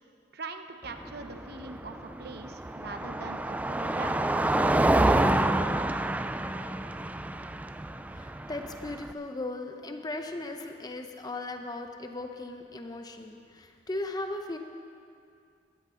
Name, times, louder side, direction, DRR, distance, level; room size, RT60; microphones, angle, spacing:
voice 1, 0.3-5.3, right 3 dB, 60° right, 7 dB, 0.8 m, -43 dB
Car passing by, 0.8-9.1, right 1 dB, 10° right, 0.3 m, -28 dB
voice 2, 8.1-14.6, left 2 dB, 20° left, 5 dB, 0.7 m, -37 dB
16.0 x 14.0 x 3.8 m, 2.3 s
head